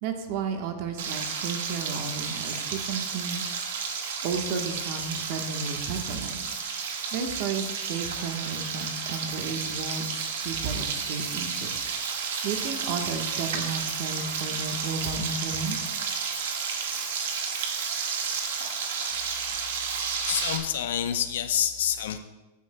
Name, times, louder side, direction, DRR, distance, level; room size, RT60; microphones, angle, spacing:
voice 1, 0.0-3.4 4.2-6.4 7.1-11.8 12.4-15.8, right 5 dB, 50° right, 5 dB, 1.2 m, -33 dB
Frying (food), 1.0-20.6, right 6 dB, 75° right, 1.5 m, -32 dB
voice 2, 20.2-22.2, left 10 dB, 75° left, 9 dB, 0.7 m, -27 dB
14.5 x 9.5 x 2.2 m, 1.1 s
supercardioid pair, 150°, 0 cm